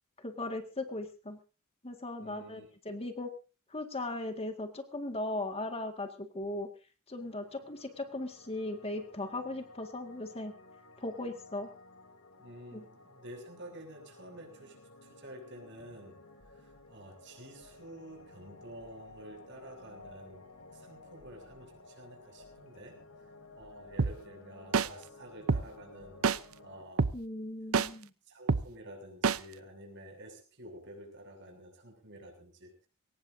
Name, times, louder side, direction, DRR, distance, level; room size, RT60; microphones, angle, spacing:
voice 1, 0.2-1.4 1.8-3.3 3.7-6.7 7.1-10.5 11.0-11.7 12.7-12.8 27.1-28.1, left 2 dB, 30° left, 6 dB, 1.9 m, -38 dB
voice 2, 2.2-2.7 12.4-16.2 16.5-20.5 20.7-26.3 26.6-27.1 28.3-32.9, right 1 dB, 55° right, 4 dB, 7.0 m, -50 dB
sound 1, 7.2-26.8, left 2 dB, 70° left, 3.0 m, -55 dB
sound 2, 24.0-24.1 24.7-24.9 25.5-25.6 26.2-26.4 27.0-27.1 27.7-27.9 28.5-28.6 29.2-29.4, right 5 dB, 75° right, 0.7 m, -25 dB
22.5 x 18.5 x 2.7 m, 0.34 s
head